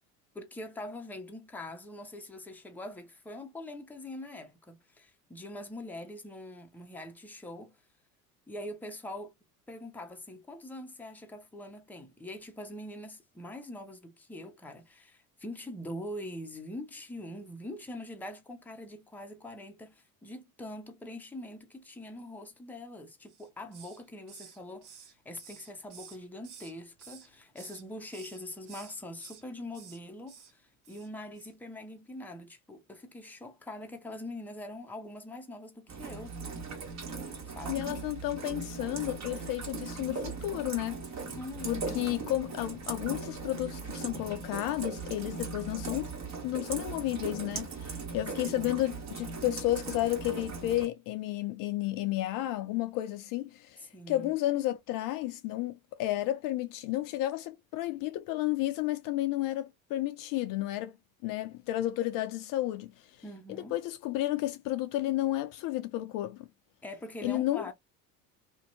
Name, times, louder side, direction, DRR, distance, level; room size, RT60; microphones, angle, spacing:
voice 1, 0.3-7.8 8.5-9.3 9.7-36.3 37.5-37.9 41.4-42.2 48.5-48.9 53.8-54.3 63.2-63.8 66.8-67.7, left 1 dB, 5° left, 0.6 m, -43 dB
Hiss, 23.3-24.0 24.3-26.7 27.0-27.8 28.1-28.4 28.7-29.4 29.7-30.0 30.3-30.5 30.8-31.1 31.3-31.5, right 7 dB, 70° right, 1.1 m, -51 dB
Rain, 35.9-50.9, right 4 dB, 40° right, 1.3 m, -39 dB
voice 2, 37.7-41.0 41.6-46.1 46.4-55.7 56.0-61.0 61.2-63.1 63.5-66.5 67.2-67.6, left 15 dB, 50° left, 0.5 m, -32 dB
2.6 x 2.2 x 2.6 m
hypercardioid pair, 75°, 43 cm